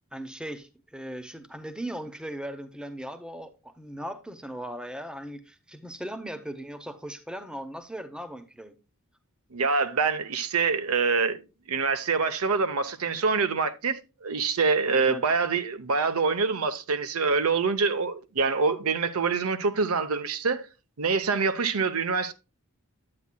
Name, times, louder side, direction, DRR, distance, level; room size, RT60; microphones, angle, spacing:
voice 1, 0.1-8.7 14.9-15.2, right 1 dB, 5° right, 0.7 m, -38 dB
voice 2, 9.5-11.4 11.7-20.7 21.0-22.3, right 4 dB, 75° right, 0.8 m, -25 dB
9.7 x 8.4 x 2.2 m
head